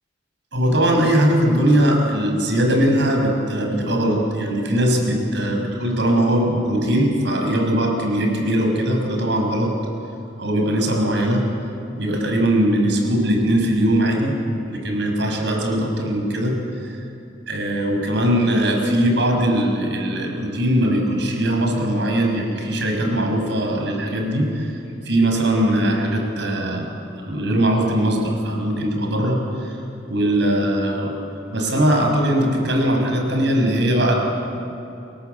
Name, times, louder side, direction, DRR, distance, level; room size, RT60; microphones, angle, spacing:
voice 1, 0.5-9.7 10.4-11.4 12.0-14.4 14.7-17.0 17.5-24.7 25.0-26.9 27.3-29.8 30.1-31.1 31.5-34.1, right 1 dB, 65° right, 2 dB, 6.3 m, -20 dB
29.5 x 21.5 x 8.3 m, 2.8 s
head